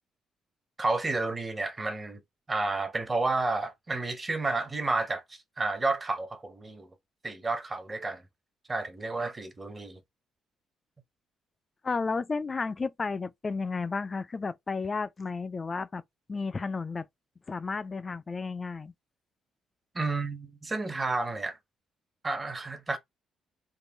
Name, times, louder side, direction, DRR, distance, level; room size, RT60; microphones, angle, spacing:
voice 1, 0.8-2.2 2.5-6.9 7.2-8.2 8.7-10.0 19.9-21.6 22.2-23.0, right 3 dB, 20° right, 0.7 m, -31 dB
voice 2, 11.8-16.0 16.3-17.1 17.5-18.9, left 4 dB, 25° left, 0.3 m, -32 dB
3.6 x 2.5 x 3.8 m
cardioid pair, 140°, 0 cm